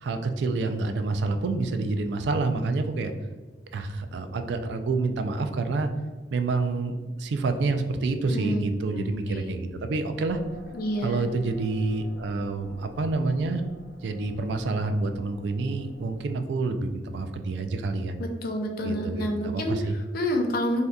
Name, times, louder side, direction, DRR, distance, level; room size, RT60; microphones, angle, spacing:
voice 1, 0.0-3.1 3.7-5.9 6.3-10.4 11.0-13.6 14.0-18.2 18.8-20.0, right 3 dB, 65° right, 7 dB, 0.3 m, -28 dB
voice 2, 8.3-9.5 10.7-11.3 18.2-20.9, equal, 50° left, 3 dB, 0.4 m, -29 dB
sound 1, 10.2-16.3, equal, 80° left, 0.9 m, -48 dB
2.7 x 2.3 x 3.4 m, 1.3 s
head